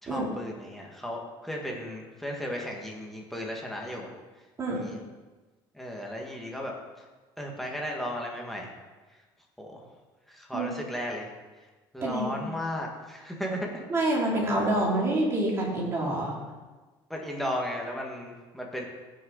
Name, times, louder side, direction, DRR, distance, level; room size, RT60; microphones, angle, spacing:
voice 1, 0.0-4.1 4.7-5.0 5.7-6.7 7.4-8.7 9.6-9.9 10.3-11.3 11.9-13.8 17.1-18.9, equal, ahead, -1 dB, 1.9 m, -35 dB
voice 2, 4.6-4.9 10.5-10.7 12.0-12.5 13.9-16.3, right 1 dB, 30° right, -3 dB, 3.1 m, -27 dB
16.5 x 6.6 x 4.0 m, 1.3 s
cardioid pair, 140°, 9 cm